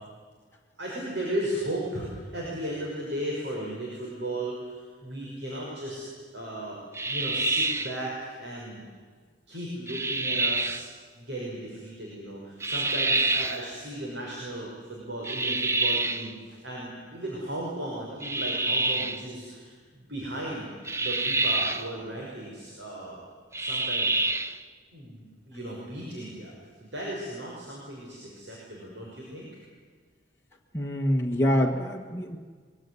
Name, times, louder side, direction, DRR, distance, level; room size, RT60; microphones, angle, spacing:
voice 1, 0.8-6.0 6.3-6.8 7.0-8.8 9.5-10.8 11.2-20.7 21.0-23.2 23.6-24.1 24.9-26.5 26.8-29.5, right 1 dB, 70° right, -4 dB, 5.9 m, -36 dB
sound 1, 6.9-8.0 9.9-10.9 12.6-13.6 15.2-16.3 18.2-19.2 20.9-21.9 23.5-24.6, right 3 dB, 15° right, 0.7 m, -27 dB
voice 2, 30.7-32.4, equal, 15° left, -2 dB, 1.5 m, -25 dB
23.5 x 21.0 x 9.8 m, 1.5 s
head